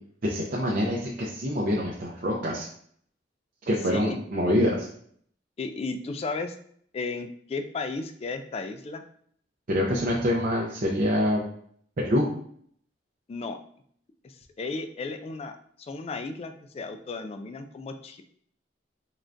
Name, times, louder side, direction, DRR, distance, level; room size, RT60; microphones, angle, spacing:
voice 1, 0.2-2.7 3.7-4.9 9.7-11.4 12.0-12.3, equal, 50° right, -4 dB, 0.5 m, -25 dB
voice 2, 5.6-6.6 6.9-9.0 13.3-13.6 14.2-18.2, left 3 dB, 35° left, 7 dB, 0.3 m, -34 dB
3.7 x 3.3 x 2.5 m, 0.62 s
head